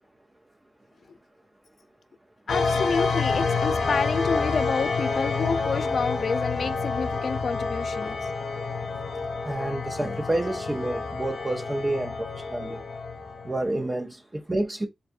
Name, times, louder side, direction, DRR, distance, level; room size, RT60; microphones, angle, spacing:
sound 1, 2.5-13.7, left 4 dB, 90° left, 0.8 m, -28 dB
voice 1, 2.5-8.3, left 5 dB, 60° left, 0.3 m, -29 dB
voice 2, 9.5-12.8 13.4-14.9, right 1 dB, 20° right, 0.4 m, -29 dB
3.3 x 2.5 x 2.4 m
wide cardioid pair, 125°, 0 cm